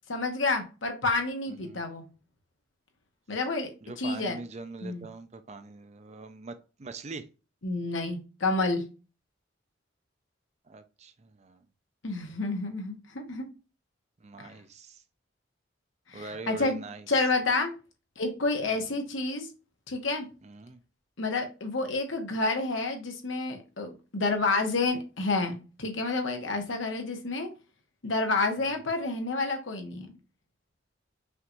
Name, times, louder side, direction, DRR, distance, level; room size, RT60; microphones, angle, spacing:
voice 1, 0.1-2.0 3.3-3.7 4.0-4.4 4.8-5.0 7.6-8.8 12.0-13.5 14.4-14.5 16.1-16.8 17.1-17.7 18.2-19.5 19.9-20.3 21.2-27.5 28.0-30.1, left 3 dB, 85° left, 1.2 m, -29 dB
voice 2, 1.5-1.8 3.8-7.3 10.7-11.6 14.2-15.0 16.1-17.1 18.7-18.9 20.4-20.8 28.6-28.8, right 3 dB, 35° right, 0.5 m, -43 dB
5.7 x 3.1 x 2.5 m
head